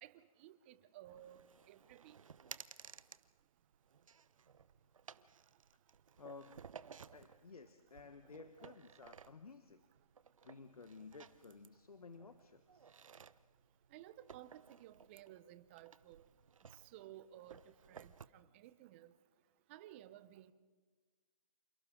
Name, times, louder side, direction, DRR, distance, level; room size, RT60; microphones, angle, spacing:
voice 1, 0.0-2.2 13.9-16.2 16.7-19.1 19.7-20.5, right 13 dB, 20° right, 0.8 m, -56 dB
sound 1, 1.0-18.3, right 6 dB, 65° right, 0.9 m, -58 dB
voice 2, 6.2-6.7 7.1-9.8 10.4-12.9, left 4 dB, 85° left, 1.3 m, -55 dB
30.0 x 28.0 x 3.9 m
hypercardioid pair, 155°, 18 cm